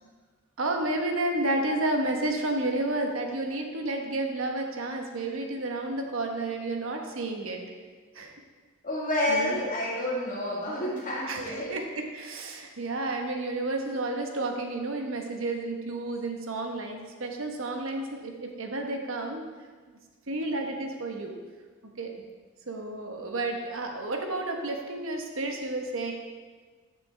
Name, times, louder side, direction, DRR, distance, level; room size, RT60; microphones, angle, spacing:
voice 1, 0.6-7.6 8.2-8.3 9.3-9.6 11.3-11.8 12.1-19.5 20.3-21.4 22.0-22.1 22.7-26.1, right 2 dB, 70° right, 2 dB, 1.2 m, -31 dB
voice 2, 8.8-11.8, left 1 dB, 40° left, -7 dB, 1.7 m, -29 dB
13.0 x 6.9 x 3.4 m, 1.5 s
head